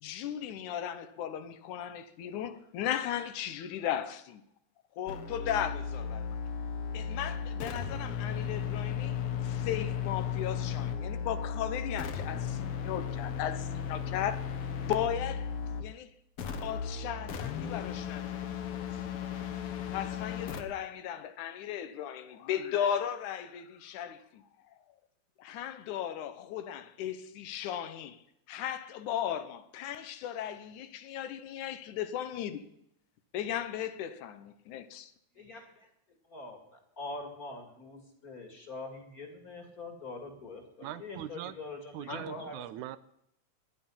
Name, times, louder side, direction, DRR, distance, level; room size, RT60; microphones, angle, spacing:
voice 1, 0.0-4.4 5.0-6.4 6.9-14.4 14.8-16.1 16.6-18.9 19.9-24.4 25.4-28.2 28.5-32.7 33.3-35.1, left 10 dB, 85° left, 2.4 m, -36 dB
sound 1, 5.1-15.9 16.4-20.6, left 7 dB, 55° left, 1.9 m, -35 dB
voice 2, 35.3-35.9 36.3-42.7, left 2 dB, 30° left, 2.4 m, -43 dB
voice 3, 40.8-41.6 41.9-43.0, right 12 dB, 85° right, 2.1 m, -41 dB
17.0 x 11.0 x 5.7 m
omnidirectional pair, 3.4 m